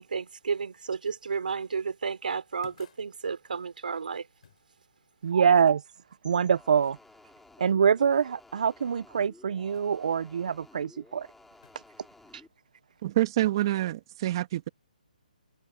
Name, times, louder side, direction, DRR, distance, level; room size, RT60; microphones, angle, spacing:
voice 1, 0.0-4.3, right 5 dB, 70° right, 3.6 m, -32 dB
sound 1, 1.5-1.7 2.6-3.1 4.4-4.7 9.7-10.0 11.6-11.9, left 8 dB, 50° left, 6.2 m, -55 dB
voice 2, 5.2-5.8 6.2-7.0 7.6-11.3 12.3-12.4, right 7 dB, 55° right, 0.6 m, -24 dB
sound 2, 6.3-12.5, left 2 dB, 5° left, 5.2 m, -55 dB
voice 3, 13.0-14.7, right 15 dB, 30° right, 1.5 m, -27 dB
hypercardioid pair, 160°, 5 cm